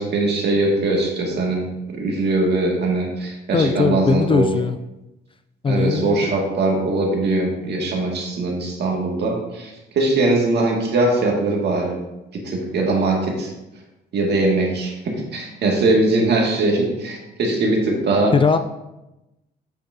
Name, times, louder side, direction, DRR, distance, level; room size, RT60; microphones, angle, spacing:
voice 1, 0.0-1.6 2.0-4.4 5.7-12.0 12.4-13.5 14.1-18.3, right 2 dB, 55° right, -1 dB, 2.0 m, -21 dB
voice 2, 3.5-4.8 5.6-6.3 18.3-18.6, left 5 dB, 25° left, 10 dB, 0.4 m, -19 dB
8.4 x 5.7 x 2.7 m, 0.95 s
supercardioid pair, 70°, 20 cm